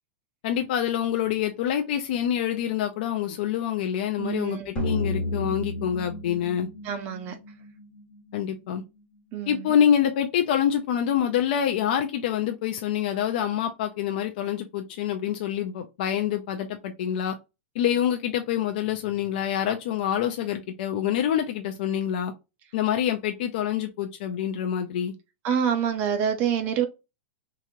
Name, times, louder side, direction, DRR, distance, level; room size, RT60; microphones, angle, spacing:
voice 1, 0.4-6.7 8.3-8.8 9.5-17.4 17.8-22.3 22.7-25.1, left 9 dB, 45° left, 0.3 m, -26 dB
voice 2, 4.2-4.7 6.8-7.4 9.3-9.7 25.4-26.9, right 8 dB, 25° right, 0.4 m, -26 dB
sound 1, 4.8-8.0, left 1 dB, 15° left, 0.7 m, -31 dB
2.9 x 2.4 x 2.6 m
supercardioid pair, 175°, 7 cm